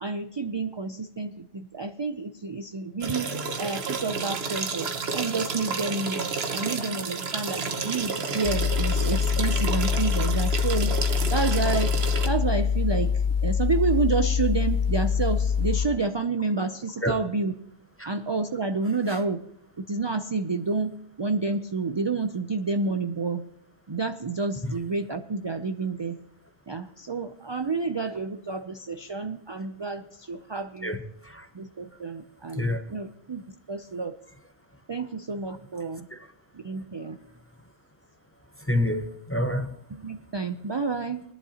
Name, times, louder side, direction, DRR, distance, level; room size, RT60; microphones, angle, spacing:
voice 1, 0.0-6.2 6.5-10.9 11.3-11.9 12.2-17.5 18.1-19.4 19.8-23.4 23.9-26.2 26.7-31.0 31.5-32.6 32.9-33.4 33.7-34.2 34.9-36.1 36.5-37.2 39.9-41.2, right 4 dB, 35° right, 0.4 m, -29 dB
sound 1, 3.0-12.3, right 5 dB, 80° right, 1.2 m, -31 dB
sound 2, 8.4-15.9, left 7 dB, 55° left, 0.8 m, -24 dB
voice 2, 30.8-31.5 32.5-32.9 36.1-36.3 38.6-39.8, left 1 dB, 15° left, 0.7 m, -28 dB
20.0 x 11.0 x 2.9 m
omnidirectional pair, 1.0 m